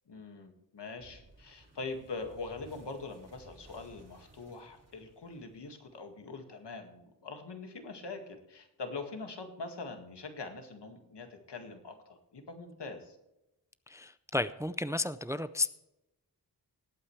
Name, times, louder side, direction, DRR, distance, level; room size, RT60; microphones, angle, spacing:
voice 1, 0.1-13.2, left 3 dB, 75° left, 5 dB, 2.0 m, -43 dB
sound 1, 0.9-6.0, right 2 dB, 35° right, 2.6 m, -59 dB
voice 2, 13.9-15.7, left 2 dB, 10° right, 13 dB, 0.4 m, -33 dB
19.5 x 8.8 x 3.3 m, 0.91 s
wide cardioid pair, 125°, 41 cm